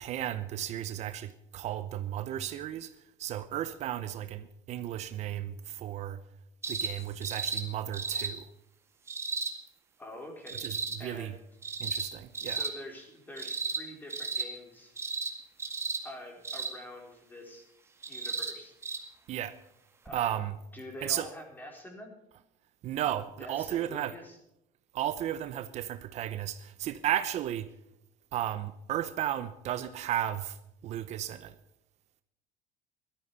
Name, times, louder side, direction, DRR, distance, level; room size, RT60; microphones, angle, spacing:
voice 1, 0.0-2.9 3.2-6.2 6.7-8.5 10.6-11.3 11.8-12.6 19.3-19.6 20.1-20.6 21.0-21.3 22.8-24.1 24.9-27.7 28.3-30.6 30.8-31.5, right 12 dB, 55° right, 0.8 m, -34 dB
sound 1, 6.6-6.9 7.2-7.6 7.9-8.3 9.1-9.5 10.5-11.0 11.6-12.1 12.3-12.7 13.4-13.8 14.1-14.5 15.0-15.3 15.6-16.0 16.4-16.7 18.0-18.5 18.8-19.0 20.1-20.2, right 4 dB, 20° right, 2.1 m, -34 dB
voice 2, 10.0-10.7 11.0-11.4 12.4-15.0 16.0-17.7 18.1-18.7 20.0-20.4 20.7-22.2 23.4-24.4, left 1 dB, 15° left, 4.2 m, -46 dB
16.0 x 13.0 x 5.6 m
cardioid pair, 145°, 14 cm